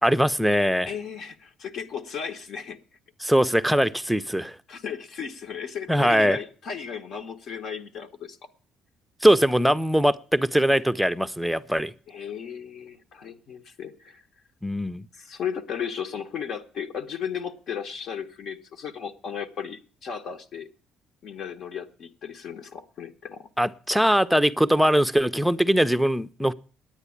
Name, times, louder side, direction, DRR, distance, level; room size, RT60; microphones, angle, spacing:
voice 1, 0.0-0.9 3.2-4.6 5.9-6.4 9.2-11.9 14.6-15.0 23.6-26.5, equal, ahead, 0.5 m, -21 dB
voice 2, 0.9-2.8 4.7-8.4 12.1-14.3 15.1-20.7 21.2-23.5, left 7 dB, 60° left, 1.1 m, -35 dB
10.0 x 9.1 x 8.3 m
cardioid pair, 115°, 0 cm